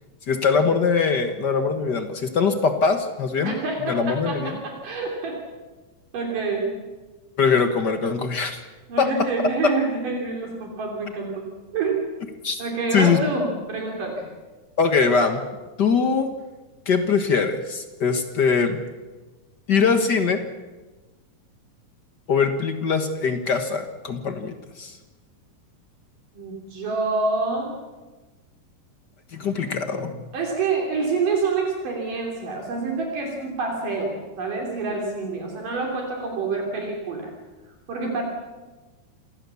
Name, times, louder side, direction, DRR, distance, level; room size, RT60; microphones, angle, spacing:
voice 1, 0.3-3.5 3.9-4.6 7.4-8.6 9.0-9.1 9.6-9.7 12.4-12.6 12.9-13.2 14.8-15.4 15.8-16.3 16.9-18.8 19.7-20.4 22.3-25.0 29.3-30.3, left 5 dB, 55° left, 7 dB, 1.2 m, -22 dB
voice 2, 3.4-5.4 6.1-6.7 8.9-11.5 11.7-12.1 12.6-14.3 26.3-27.8 30.3-37.3 37.9-38.2, right 4 dB, 70° right, 0 dB, 4.7 m, -27 dB
27.5 x 18.0 x 7.1 m, 1.2 s
omnidirectional pair, 4.0 m